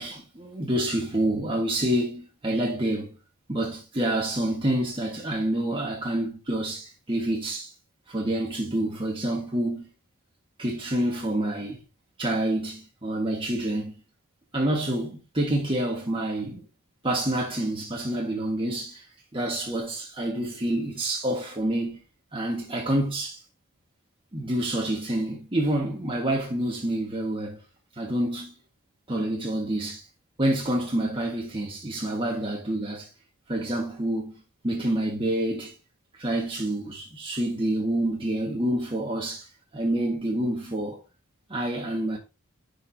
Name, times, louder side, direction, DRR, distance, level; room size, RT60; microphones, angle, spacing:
voice 1, 0.0-3.1 3.5-7.7 8.1-9.9 10.6-11.8 12.2-13.9 14.5-16.6 17.0-19.0 19.3-22.0 22.3-23.4 24.3-27.6 28.0-28.5 29.1-30.0 30.4-33.1 33.5-34.3 34.6-35.7 36.2-39.5 39.7-41.0 41.5-42.2, right 1 dB, 25° right, 1.6 m, -27 dB
10.5 x 4.9 x 2.8 m
head